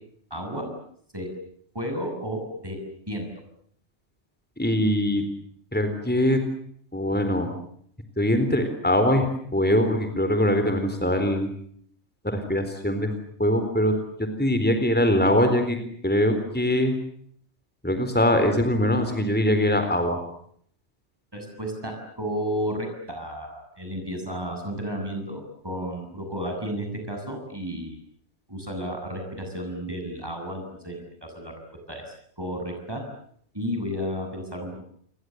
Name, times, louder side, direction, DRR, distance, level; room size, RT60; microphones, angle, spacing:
voice 1, 0.3-0.7 1.1-1.3 1.7-2.8 3.1-3.3 21.3-28.0 28.5-31.5 31.9-33.0 33.5-34.8, equal, 20° right, 3 dB, 8.1 m, -32 dB
voice 2, 4.6-5.2 5.7-6.4 6.9-7.5 8.2-11.5 12.2-13.1 13.4-13.9 14.4-15.8 16.0-16.9 17.8-20.2, left 1 dB, 10° left, 7 dB, 3.9 m, -22 dB
30.0 x 23.0 x 8.0 m, 0.66 s
omnidirectional pair, 1.2 m